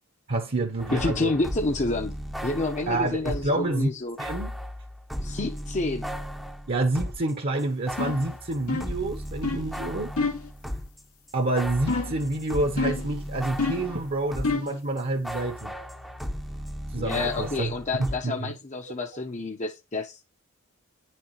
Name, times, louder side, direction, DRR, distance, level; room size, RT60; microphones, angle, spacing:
voice 1, 0.3-1.3 2.9-4.6 6.7-10.1 11.3-15.8 16.9-17.7 18.0-18.6, right 2 dB, 45° right, 1.0 m, -28 dB
sound 1, 0.8-3.6 4.2-7.3 7.6-14.7 15.0-18.2, equal, ahead, 0.8 m, -36 dB
voice 2, 0.9-4.2 5.2-6.1 17.0-20.2, left 2 dB, 35° left, 0.9 m, -29 dB
sound 2, 8.0-8.3 8.7-9.0 9.4-9.7 10.2-10.5 11.9-12.3 12.8-13.1 13.6-13.9 14.4-14.8, left 3 dB, 85° left, 2.1 m, -28 dB
9.7 x 6.1 x 3.2 m
head